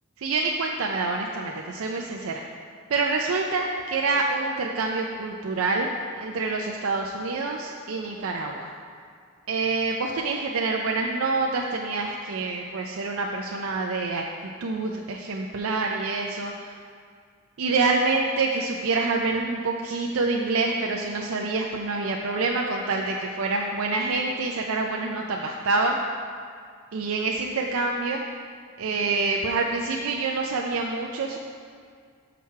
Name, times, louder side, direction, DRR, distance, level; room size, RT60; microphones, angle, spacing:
voice 1, 0.2-2.4 2.9-8.7 9.5-14.2 14.6-16.7 17.6-26.0 26.9-28.2 28.8-31.4, right 3 dB, 80° right, 1 dB, 0.5 m, -26 dB
6.3 x 5.9 x 4.6 m, 2.1 s
head